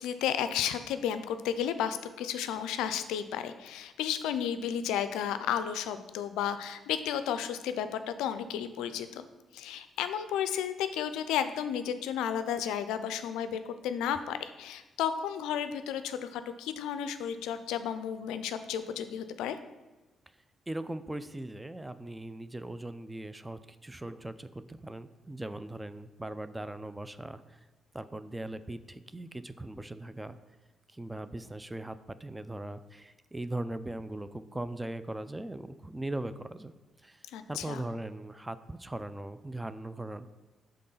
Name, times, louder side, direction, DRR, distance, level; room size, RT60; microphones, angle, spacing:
voice 1, 0.0-9.3 9.5-19.6 37.3-37.8, left 9 dB, 85° left, 11 dB, 0.3 m, -33 dB
voice 2, 20.7-27.7 27.9-30.4 30.9-36.7 37.0-40.3, right 1 dB, 15° right, 13 dB, 0.4 m, -39 dB
5.3 x 3.8 x 5.5 m, 1.1 s
supercardioid pair, 55°, 0 cm